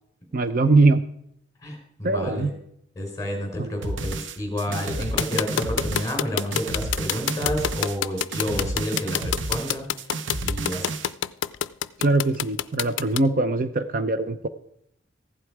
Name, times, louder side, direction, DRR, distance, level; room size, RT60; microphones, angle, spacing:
voice 1, 0.3-1.1 2.0-2.5 3.6-3.7 12.0-14.5, right 3 dB, 45° right, 10 dB, 0.6 m, -21 dB
voice 2, 1.6-2.5 3.0-10.2 10.4-10.9, left 1 dB, 15° left, 2 dB, 4.3 m, -30 dB
sound 1, 3.8-11.1, right 2 dB, 75° right, 0.8 m, -31 dB
sound 2, 5.2-13.2, left 10 dB, 80° left, 0.4 m, -26 dB
15.0 x 11.0 x 4.7 m, 0.72 s
head